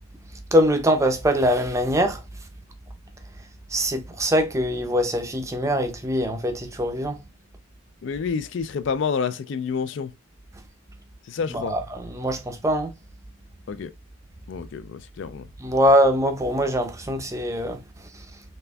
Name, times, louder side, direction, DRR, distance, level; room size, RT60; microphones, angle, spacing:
voice 1, 0.5-2.2 3.7-7.2 11.5-12.9 15.6-17.8 18.1-18.3, equal, 15° right, 0.5 m, -22 dB
voice 2, 8.0-10.1 11.3-11.8 13.7-13.9 14.5-15.5, left 6 dB, 55° left, 0.3 m, -28 dB
4.1 x 3.3 x 2.3 m
head